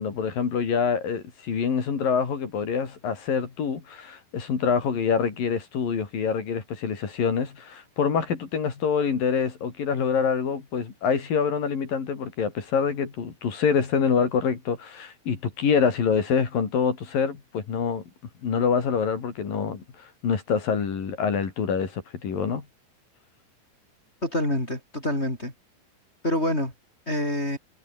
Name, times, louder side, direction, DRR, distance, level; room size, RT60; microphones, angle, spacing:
voice 1, 0.0-18.0 18.4-22.6, left 6 dB, 60° left, 5.3 m, -26 dB
voice 2, 24.2-25.5 26.2-26.7 27.1-27.6, left 1 dB, 15° left, 5.3 m, -26 dB
omnidirectional pair, 4.6 m